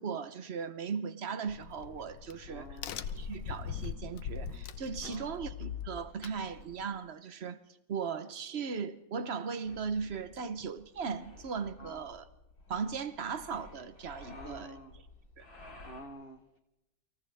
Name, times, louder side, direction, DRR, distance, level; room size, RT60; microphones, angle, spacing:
voice 1, 0.0-2.7 3.1-7.6 7.9-12.2 12.7-14.7 15.4-15.5, right 6 dB, 45° right, 1.0 m, -37 dB
Crack, 1.5-6.9, left 7 dB, 80° left, 1.6 m, -41 dB
voice 2, 2.5-3.2 5.0-5.5 11.8-12.2 14.3-15.0 15.8-16.6, equal, 35° left, 1.2 m, -50 dB
sound 1, 9.6-16.0, left 2 dB, 55° left, 4.2 m, -53 dB
29.5 x 25.5 x 3.5 m
omnidirectional pair, 1.9 m